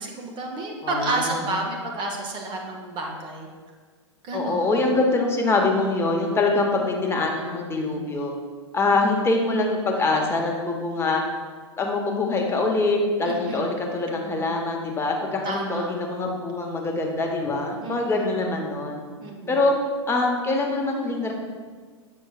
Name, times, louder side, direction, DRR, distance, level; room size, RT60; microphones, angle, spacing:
voice 1, 0.0-3.5 4.2-4.7 8.9-9.0 13.2-13.8 15.4-15.9 17.8-18.3 19.2-19.6, right 2 dB, 30° right, 0 dB, 1.0 m, -30 dB
voice 2, 0.8-1.5 4.3-8.3 8.7-11.2 11.8-19.0 19.5-19.7 20.1-21.3, left 3 dB, 15° left, 1 dB, 0.9 m, -24 dB
7.8 x 5.5 x 2.4 m, 1.6 s
figure-of-eight pair, 100°, 16 cm